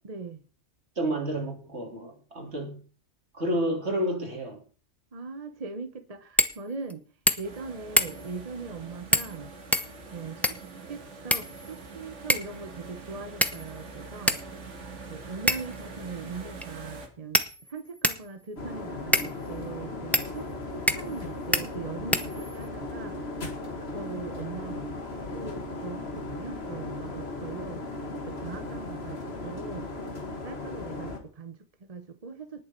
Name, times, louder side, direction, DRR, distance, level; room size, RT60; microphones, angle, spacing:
voice 1, 0.0-0.4 5.1-7.0 7.4-9.5 10.1-10.6 10.9-14.4 15.1-23.2 23.8-27.8 28.3-29.9 30.4-32.6, right 4 dB, 35° right, 0.9 m, -40 dB
voice 2, 1.0-2.8 3.3-4.6, right 1 dB, 65° right, 3.5 m, -30 dB
sound 1, 6.4-6.6 6.9-7.0 7.3-7.6 8.0-8.3 9.1-9.4 9.7-10.7 11.3-11.9 12.3-12.6 13.4-13.8 14.3-14.4 15.5-15.8 16.6-16.7 17.3-18.3 19.1-19.3 20.1-20.3 20.9-21.2 21.5-21.6 22.1-22.7, equal, ahead, 0.8 m, -26 dB
sound 2, 7.4-17.1, right 3 dB, 80° right, 2.3 m, -44 dB
sound 3, 18.6-31.2, left 2 dB, 60° left, 2.3 m, -37 dB
19.5 x 7.2 x 4.4 m
omnidirectional pair, 1.2 m